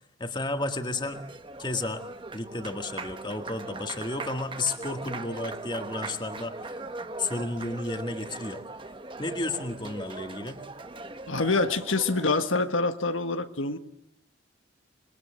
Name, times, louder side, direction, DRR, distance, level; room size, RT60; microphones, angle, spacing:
voice 1, 0.2-1.2 1.6-2.0 2.3-6.7 7.2-8.6 9.2-10.6, left 2 dB, 25° left, 2.0 m, -32 dB
Applause, 0.7-12.5, right 2 dB, 25° right, 1.1 m, -40 dB
voice 2, 11.3-13.8, left 3 dB, 85° left, 1.5 m, -26 dB
27.5 x 22.0 x 9.1 m
head